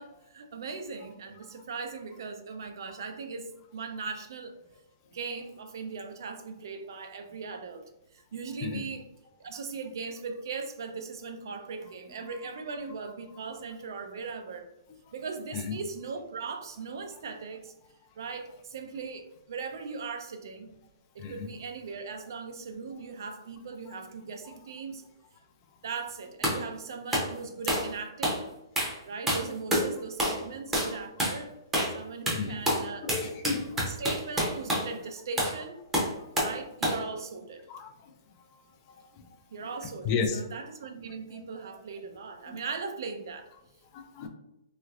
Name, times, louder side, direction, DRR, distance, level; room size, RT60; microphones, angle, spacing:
voice 1, 0.0-4.6 5.1-9.0 9.4-14.7 15.1-17.7 18.2-20.7 21.1-25.0 25.8-28.5 29.0-31.5 31.9-33.1 33.8-35.8 36.4-37.7 39.5-43.5, right 4 dB, 65° right, 7 dB, 0.5 m, -39 dB
sound 1, 26.4-26.6 27.1-27.3 27.7-27.9 28.2-28.4 28.8-29.0 29.3-29.9 30.2-30.4 30.7-30.9 31.2-31.4 31.7-32.0 32.3-34.9 35.4-35.6 35.9-36.6 36.8-37.0, equal, 10° right, 0.7 m, -28 dB
voice 2, 33.0-33.9 37.7-37.9 38.9-39.2 40.0-40.4 41.3-41.4 42.5-42.6 43.9-44.3, left 5 dB, 30° left, 5 dB, 0.4 m, -33 dB
3.0 x 2.9 x 2.4 m, 0.88 s
hypercardioid pair, 160°, 2 cm